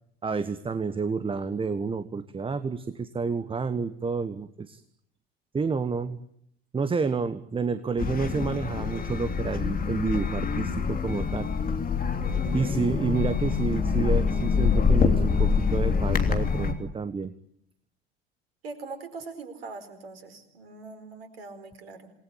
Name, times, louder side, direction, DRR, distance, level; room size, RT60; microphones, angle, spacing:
voice 1, 0.2-4.8 5.5-6.2 6.7-11.5 12.5-17.3, right 4 dB, 15° right, 13 dB, 1.3 m, -29 dB
sound 1, 8.0-16.7, left 5 dB, 25° left, 3.4 m, -25 dB
voice 2, 18.6-22.1, right 3 dB, 65° right, 8 dB, 4.8 m, -42 dB
28.0 x 20.0 x 8.8 m, 0.72 s
figure-of-eight pair, 70°, 31 cm